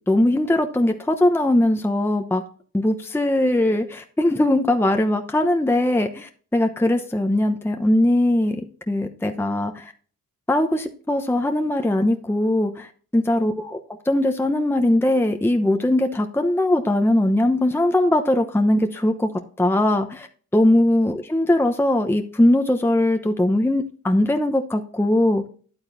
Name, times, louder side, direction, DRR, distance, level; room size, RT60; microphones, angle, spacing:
voice 1, 0.1-2.4 2.7-9.9 10.5-13.8 14.1-19.3 19.6-20.3 20.5-25.5, left 1 dB, 5° left, 5 dB, 0.9 m, -20 dB
9.7 x 8.9 x 2.6 m, 0.43 s
supercardioid pair, 60°, 37 cm